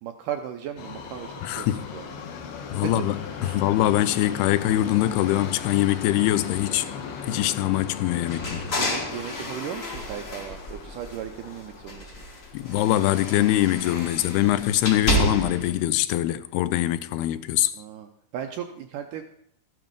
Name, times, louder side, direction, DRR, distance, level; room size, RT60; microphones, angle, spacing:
voice 1, 0.0-1.7 1.9-2.2 2.8-3.1 3.4-3.7 8.7-12.2 17.7-18.1 18.3-19.2, right 9 dB, 80° right, 1.9 m, -36 dB
Subway metro underground, 0.8-14.9 15.2-15.3 16.1-16.2 16.5-16.6 17.2-17.3, left 6 dB, 70° left, 2.9 m, -38 dB
voice 2, 1.4-1.9 2.7-6.9 7.3-8.6 12.5-17.7, left 14 dB, 85° left, 2.7 m, -23 dB
sound 1, 8.3-11.4 11.8-15.8, equal, 35° left, 1.3 m, -30 dB
13.5 x 9.5 x 5.3 m
omnidirectional pair, 4.5 m